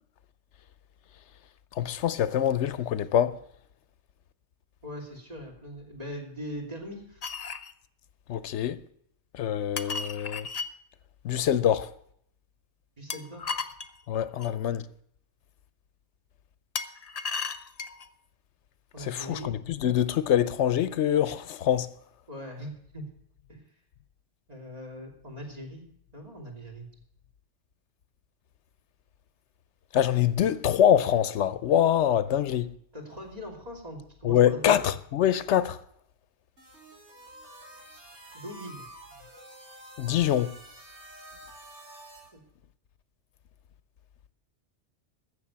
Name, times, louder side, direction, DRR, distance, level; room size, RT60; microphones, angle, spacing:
voice 1, 1.7-3.4 8.3-8.8 9.3-10.5 11.2-11.9 14.1-14.9 19.0-21.9 29.9-32.7 34.2-35.8 40.0-40.6, left 10 dB, 80° left, 1.0 m, -25 dB
voice 2, 4.8-7.2 13.0-13.7 18.9-19.6 22.3-23.1 23.5-23.6 24.5-26.9 32.9-34.8 38.3-38.9 42.3-42.4, equal, 35° right, 3.1 m, -41 dB
sound 1, 7.2-7.7 9.8-10.7 13.1-14.5 16.7-18.1, left 5 dB, 40° left, 0.6 m, -35 dB
sound 2, 36.6-42.3, right 1 dB, 80° right, 4.0 m, -49 dB
14.0 x 6.8 x 8.4 m
omnidirectional pair, 1.2 m